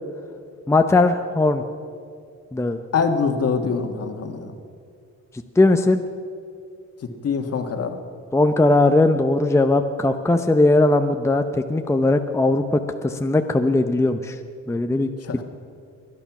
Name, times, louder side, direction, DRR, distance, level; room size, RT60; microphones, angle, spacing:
voice 1, 0.7-1.6 2.5-2.8 5.6-6.0 8.3-11.4 11.7-14.4 14.7-15.1, left 2 dB, 10° left, 6 dB, 0.7 m, -19 dB
voice 2, 2.9-4.6 7.2-8.0 15.2-15.4, left 5 dB, 55° left, 5 dB, 1.7 m, -24 dB
22.5 x 9.9 x 6.0 m, 2.4 s
cardioid pair, 90°, 30 cm